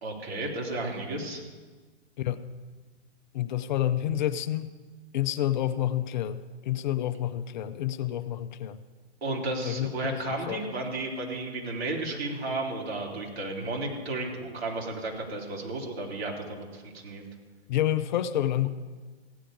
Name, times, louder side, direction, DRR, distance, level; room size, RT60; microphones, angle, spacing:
voice 1, 0.0-1.4 9.2-17.2, right 2 dB, 65° right, -2 dB, 3.6 m, -33 dB
voice 2, 3.3-4.7 5.1-8.8 9.6-10.6 17.7-18.7, left 12 dB, 45° left, 11 dB, 0.6 m, -29 dB
16.0 x 10.0 x 5.0 m, 1.4 s
figure-of-eight pair, 120°, 33 cm